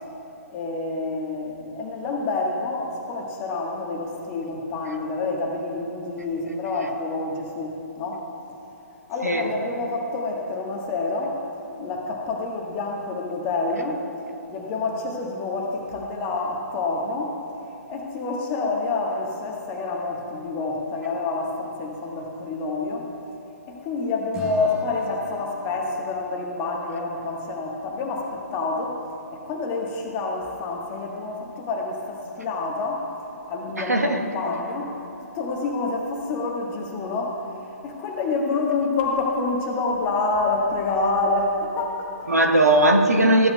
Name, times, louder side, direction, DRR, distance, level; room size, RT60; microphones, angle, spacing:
voice 1, 0.5-8.2 9.1-11.4 11.8-14.0 14.5-17.4 17.9-23.0 23.7-29.0 29.3-33.1 33.5-35.0 35.3-37.4 37.8-42.3, left 3 dB, 25° left, 0 dB, 1.2 m, -27 dB
Acoustic guitar / Strum, 24.3-27.6, equal, 10° right, 1.1 m, -41 dB
voice 2, 33.8-34.2 42.3-43.5, right 1 dB, 90° right, 3 dB, 1.1 m, -18 dB
14.5 x 8.4 x 2.2 m, 2.8 s
figure-of-eight pair, 135°, 8 cm